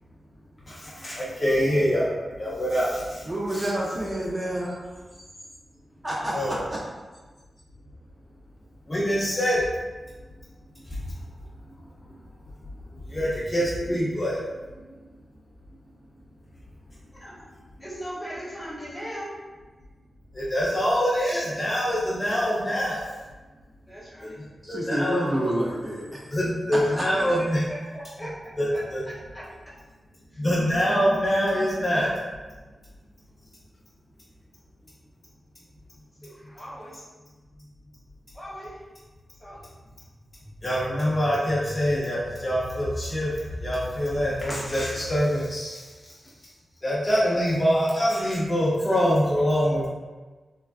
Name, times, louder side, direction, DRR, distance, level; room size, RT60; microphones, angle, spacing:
voice 1, 0.7-3.6 6.3-6.6 8.9-9.7 10.8-11.1 13.1-14.4 20.3-23.0 24.2-24.3 24.7-25.2 26.3-27.6 28.6-29.0 30.4-32.2 40.6-43.3 43.6-46.1 46.8-49.9, equal, 25° left, -7 dB, 0.5 m, -25 dB
voice 2, 3.3-4.8 6.0-6.6 24.6-26.0 26.9-27.0, right 1 dB, 30° right, -4 dB, 0.4 m, -28 dB
voice 3, 17.8-19.3 23.9-24.3 26.8-27.3 27.9-28.3 29.0-29.4 30.3-30.4 36.2-36.9 38.3-38.8 39.4-39.6, equal, 10° left, -8 dB, 1.1 m, -39 dB
3.3 x 2.3 x 2.3 m, 1.3 s
wide cardioid pair, 115°, 0 cm